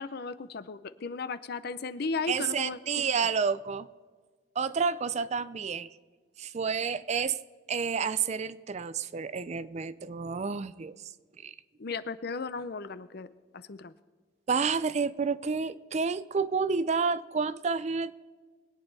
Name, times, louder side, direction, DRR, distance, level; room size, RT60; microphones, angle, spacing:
voice 1, 0.0-3.0 11.8-13.3 13.5-13.9, left 4 dB, 55° left, 14 dB, 0.6 m, -35 dB
voice 2, 2.3-3.9 4.6-5.9 6.4-7.4 7.7-11.0 11.4-11.5 14.5-18.1, right 5 dB, 35° right, 15 dB, 0.4 m, -30 dB
22.5 x 9.1 x 4.1 m, 1.5 s
head